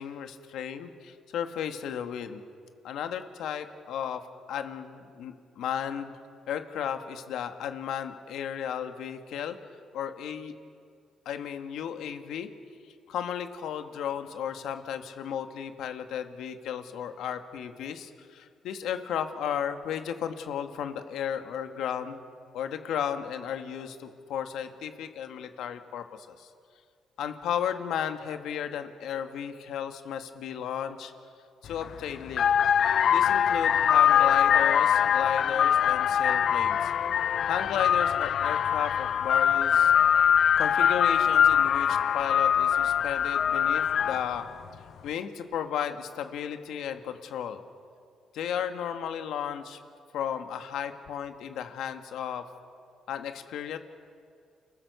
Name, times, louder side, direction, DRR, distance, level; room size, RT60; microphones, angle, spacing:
voice 1, 0.0-2.4 2.8-4.2 4.5-6.1 6.5-9.6 9.9-10.5 11.2-12.5 13.1-22.2 22.5-26.5 27.2-31.1 31.6-32.4 33.1-36.9 37.5-39.9 40.6-44.4 45.0-47.6 48.3-49.8 50.1-52.4 53.1-53.8, left 9 dB, 80° left, 7 dB, 1.4 m, -34 dB
sound 1, 31.7-31.9 32.3-44.4, left 9 dB, 60° left, 0.4 m, -23 dB
29.5 x 15.5 x 6.8 m, 2.4 s
cardioid pair, 90°, 0 cm